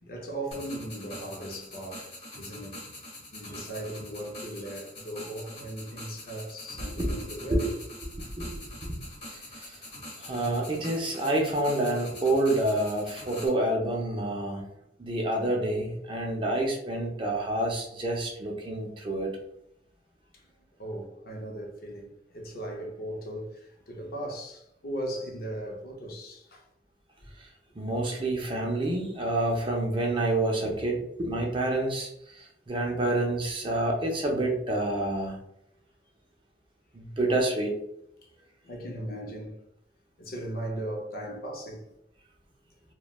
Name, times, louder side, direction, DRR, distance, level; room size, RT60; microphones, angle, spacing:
voice 1, 0.0-2.8 3.3-7.8 20.3-20.4 20.8-26.6 38.2-38.3 38.6-39.6 40.2-41.9, right 1 dB, 55° left, 0.6 m, -38 dB
sound 1, 0.5-13.5, left 1 dB, 35° left, 1.2 m, -44 dB
voice 2, 8.2-9.0 9.3-9.8 10.2-14.6 15.0-19.3 27.4-27.5 27.7-35.4 36.9-37.7, right 1 dB, 30° right, 0.5 m, -28 dB
3.1 x 2.2 x 2.3 m
head